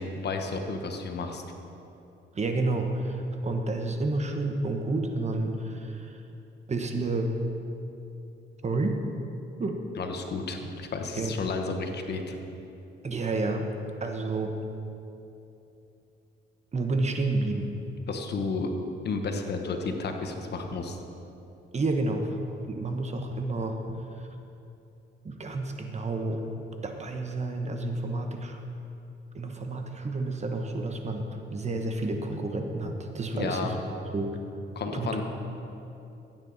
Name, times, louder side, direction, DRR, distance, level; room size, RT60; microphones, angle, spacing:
voice 1, 0.0-1.4 10.0-12.4 18.1-18.7 19.0-21.0 33.3-33.8 34.7-35.2, left 4 dB, 55° left, 4 dB, 1.2 m, -32 dB
voice 2, 2.3-6.2 6.7-7.3 8.6-9.0 9.6-9.8 11.2-11.3 13.0-13.7 14.0-14.5 16.7-17.7 21.7-22.3 22.6-23.8 24.2-24.3 25.2-26.4 26.8-28.6 29.3-33.7 34.1-34.3 34.9-35.2, right 2 dB, 35° right, 4 dB, 1.2 m, -30 dB
15.5 x 9.1 x 4.1 m, 2.8 s
cardioid pair, 90°, 20 cm